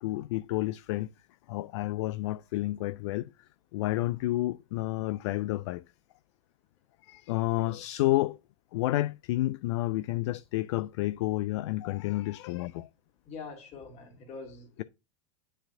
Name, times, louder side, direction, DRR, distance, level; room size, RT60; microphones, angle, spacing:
voice 1, 0.0-1.1 1.5-3.3 3.7-5.8 7.0-8.4 8.7-12.9, left 17 dB, 60° left, 0.4 m, -30 dB
voice 2, 13.3-14.8, left 4 dB, 45° left, 2.4 m, -44 dB
9.8 x 4.3 x 2.6 m
figure-of-eight pair, 85°, 17 cm